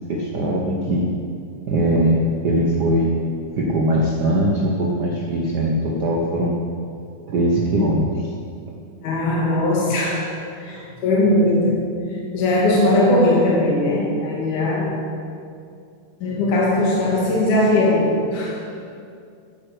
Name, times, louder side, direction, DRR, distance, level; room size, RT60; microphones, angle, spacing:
voice 1, 0.1-1.1 1.7-3.3 3.6-6.6 7.3-8.3, right 1 dB, 65° right, -2 dB, 1.0 m, -20 dB
voice 2, 9.0-10.4 10.6-15.0 16.2-18.6, left 1 dB, 75° left, -4 dB, 3.2 m, -19 dB
14.5 x 9.0 x 5.2 m, 2.4 s
omnidirectional pair, 3.6 m